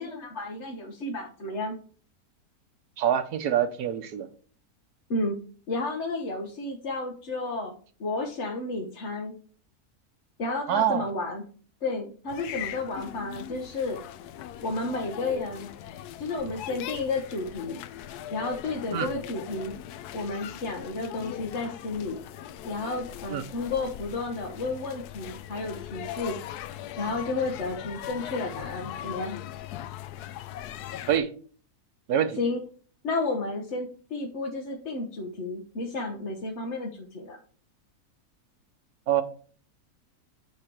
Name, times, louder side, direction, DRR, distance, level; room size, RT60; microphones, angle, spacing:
voice 1, 0.0-1.8 5.1-5.4 5.7-7.7 8.0-9.3 10.4-11.4 11.8-14.0 14.6-15.7 16.2-17.8 18.3-19.8 20.1-22.2 22.6-26.4 27.0-29.4 32.4-32.6 33.0-37.4, left 3 dB, 50° left, 1.2 m, -32 dB
voice 2, 3.0-4.3 10.7-11.1 18.9-19.1 23.3-23.4 31.1-31.3 32.1-32.4 39.1-39.2, right 9 dB, 85° right, 1.4 m, -25 dB
sound 1, 12.3-31.2, left 11 dB, 90° left, 1.1 m, -40 dB
8.8 x 3.3 x 5.9 m
omnidirectional pair, 1.6 m